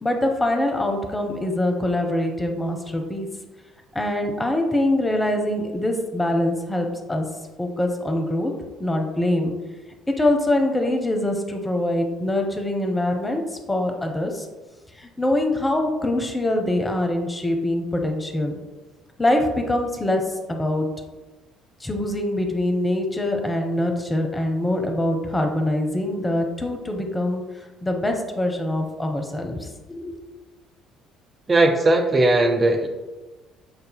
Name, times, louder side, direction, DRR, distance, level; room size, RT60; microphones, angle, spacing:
voice 1, 0.0-3.3 3.9-7.3 7.6-8.5 8.8-9.5 10.1-14.5 15.0-18.5 19.2-20.9 21.8-27.5 27.8-30.1, left 1 dB, 15° left, 3 dB, 0.7 m, -24 dB
voice 2, 31.5-32.9, right 2 dB, 30° right, 4 dB, 0.5 m, -18 dB
6.5 x 2.6 x 2.2 m, 1.2 s
figure-of-eight pair, 50°, 0 cm